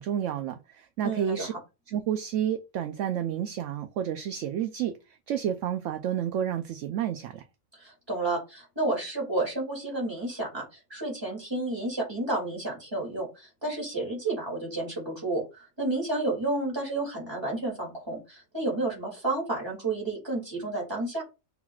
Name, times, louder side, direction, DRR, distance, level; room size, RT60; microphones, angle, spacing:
voice 1, 0.0-1.5 1.9-5.0 5.3-7.4, right 9 dB, 70° right, 0.8 m, -30 dB
voice 2, 1.0-1.6 7.7-21.2, right 2 dB, 20° right, 2.5 m, -31 dB
5.7 x 3.9 x 2.3 m
omnidirectional pair, 1.5 m